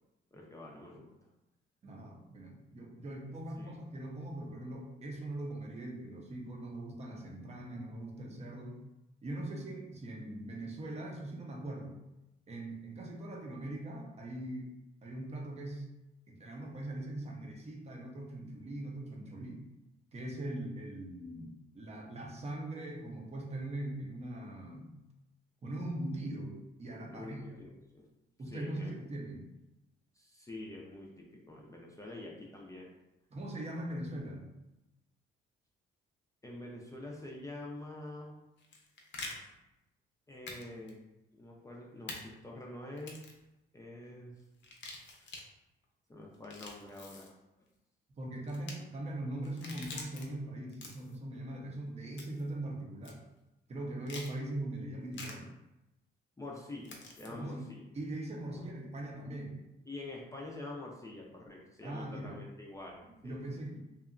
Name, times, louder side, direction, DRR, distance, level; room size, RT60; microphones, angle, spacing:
voice 1, 0.3-1.3 3.6-3.8 27.1-28.1 28.5-28.9 30.1-32.9 36.4-38.3 40.3-41.0 41.3-43.2 43.7-44.4 45.1-45.3 46.1-47.4 56.4-57.8 58.5-58.6 59.9-63.6, left 2 dB, 15° left, -2 dB, 0.4 m, -46 dB
voice 2, 1.8-8.8 9.2-11.9 12.5-14.7 15.0-15.9 16.3-19.6 20.1-24.9 25.6-27.5 28.4-29.5 33.3-34.5 48.2-53.2 53.7-55.5 57.3-57.7 57.9-59.6 61.8-62.4 63.0-63.8, right 1 dB, 35° right, 0 dB, 0.6 m, -41 dB
sound 1, 38.6-39.3 40.5-40.6 40.9-41.0 42.1-42.2 43.0-43.4 44.6-45.4 46.3-47.3 48.5-48.7 49.4-50.2 50.7-51.2 52.2-52.5 53.0-53.1 54.1-54.3 55.1-55.3 56.8-57.3, left 3 dB, 65° left, 0.6 m, -45 dB
2.8 x 2.2 x 2.4 m, 0.95 s
cardioid pair, 90°, 20 cm